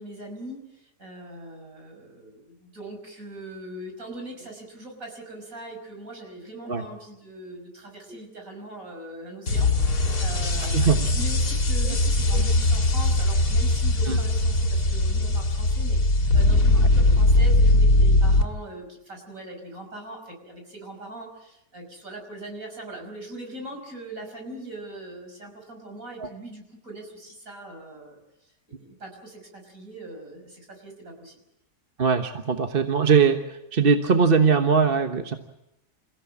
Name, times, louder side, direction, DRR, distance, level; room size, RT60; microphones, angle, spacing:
voice 1, 0.0-28.2 28.8-31.4, right 1 dB, 60° right, 3 dB, 6.1 m, -41 dB
sound 1, 9.5-18.4, left 2 dB, 80° left, 2.7 m, -20 dB
voice 2, 10.6-11.1 11.8-12.0 12.3-12.4 14.1-14.2 16.7-16.9 26.2-26.3 32.0-35.3, right 5 dB, 40° right, 6 dB, 1.3 m, -21 dB
29.0 x 16.0 x 8.6 m, 0.84 s
omnidirectional pair, 1.7 m